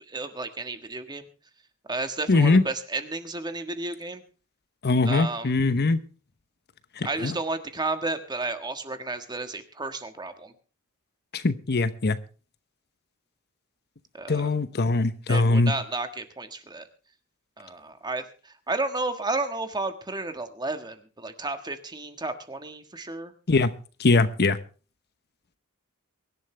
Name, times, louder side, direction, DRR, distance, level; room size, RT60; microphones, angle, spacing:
voice 1, 0.1-1.3 1.9-4.2 5.0-5.5 7.0-10.5 14.1-14.5 15.3-16.9 17.6-23.3, right 2 dB, 20° right, 8 dB, 1.5 m, -32 dB
voice 2, 2.3-2.6 4.8-6.0 7.0-7.4 11.3-12.2 14.3-15.7 23.5-23.7 24.0-24.6, left 3 dB, 50° left, 13 dB, 0.9 m, -22 dB
23.5 x 11.5 x 3.3 m, 0.37 s
head